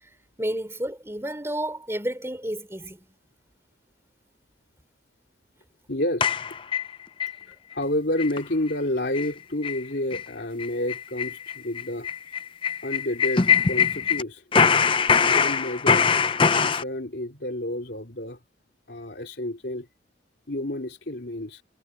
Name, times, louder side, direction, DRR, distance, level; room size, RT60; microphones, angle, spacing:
voice 1, 0.4-3.0, right 1 dB, 15° right, 3.2 m, -31 dB
voice 2, 5.9-6.4 7.5-12.1 12.8-14.9 15.2-16.1 16.5-18.4 18.9-19.9 20.5-21.6, left 1 dB, 60° left, 3.3 m, -30 dB
sound 1, 6.2-7.3 7.7-7.8 8.2-8.4 8.7-8.8 9.1-9.3 9.6-9.8 10.1-10.2 10.6-14.2 14.5-16.8, left 6 dB, 25° left, 0.5 m, -22 dB
head